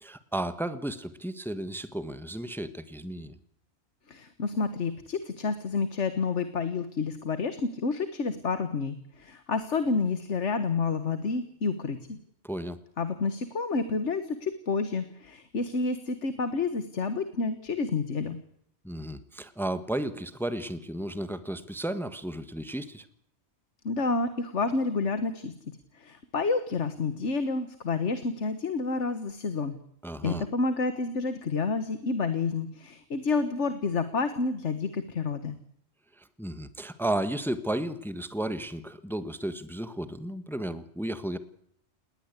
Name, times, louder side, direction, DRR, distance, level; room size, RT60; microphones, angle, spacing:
voice 1, 0.0-3.4 12.4-12.8 18.8-23.1 30.0-30.4 36.2-41.4, right 1 dB, ahead, 12 dB, 1.3 m, -33 dB
voice 2, 4.1-12.2 13.0-18.4 23.8-25.5 25.9-29.8 30.2-35.5, left 4 dB, 85° left, 11 dB, 1.8 m, -29 dB
20.0 x 19.5 x 8.3 m, 0.67 s
omnidirectional pair, 1.2 m